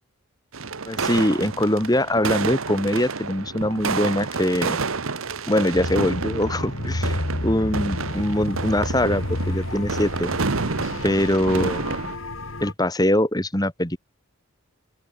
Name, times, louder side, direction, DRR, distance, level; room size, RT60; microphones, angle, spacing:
sound 1, 0.5-12.2, right 4 dB, 75° right, 1.3 m, -29 dB
voice 1, 0.9-4.8 5.5-10.3 11.0-12.1 12.6-14.0, left 1 dB, 15° left, 2.5 m, -23 dB
sound 2, 5.7-12.7, left 1 dB, 70° left, 2.5 m, -30 dB
open air
head